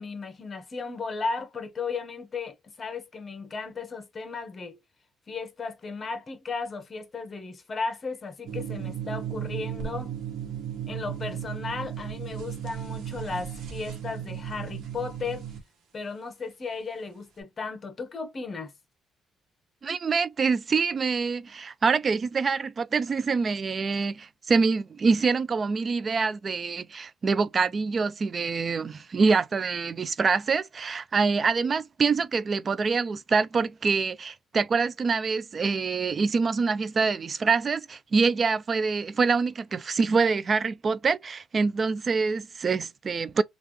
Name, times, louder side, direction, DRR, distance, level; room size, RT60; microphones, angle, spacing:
voice 1, 0.0-4.8 5.3-10.1 10.9-15.5 15.9-18.7, left 4 dB, 40° left, 1.0 m, -35 dB
sound 1, 8.5-15.6, right 9 dB, 80° right, 1.2 m, -35 dB
voice 2, 19.8-43.4, right 4 dB, 40° right, 0.4 m, -25 dB
3.2 x 2.4 x 3.1 m
cardioid pair, 90°, 0 cm